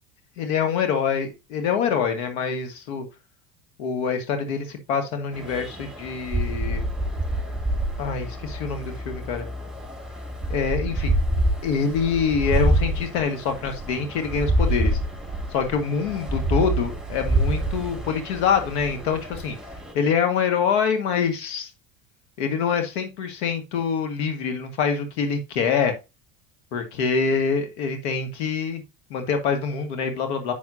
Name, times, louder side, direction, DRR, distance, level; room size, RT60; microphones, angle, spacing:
voice 1, 0.4-3.0 3.8-6.8 8.0-9.5 10.5-11.2 11.6-15.0 15.5-19.6 19.9-21.7 22.4-25.9 26.7-28.8 29.1-30.5, left 6 dB, 80° left, 6 dB, 1.7 m, -25 dB
sound 1, 5.3-19.9, right 1 dB, ahead, 3.0 m, -27 dB
9.4 x 6.0 x 2.7 m, 0.25 s
supercardioid pair, 95°, 33 cm